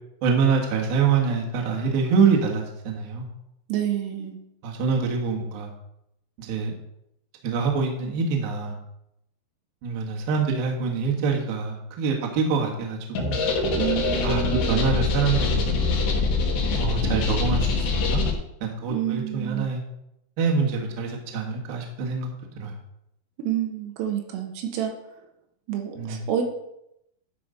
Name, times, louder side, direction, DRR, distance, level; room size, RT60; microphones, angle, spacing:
voice 1, 0.2-3.3 4.6-5.7 6.4-6.7 7.4-8.7 9.8-13.4 14.2-15.7 16.8-18.2 18.6-19.8 20.4-22.3 22.6-22.7 26.0-26.2, right 5 dB, 65° right, 0 dB, 2.6 m, -25 dB
voice 2, 3.7-4.4 13.8-14.9 18.9-19.7 23.4-24.9 25.7-26.4, right 9 dB, 80° right, 3 dB, 3.6 m, -28 dB
sound 1, 13.1-18.3, left 3 dB, 75° left, 1.9 m, -24 dB
12.0 x 5.1 x 5.1 m, 0.81 s
omnidirectional pair, 6.0 m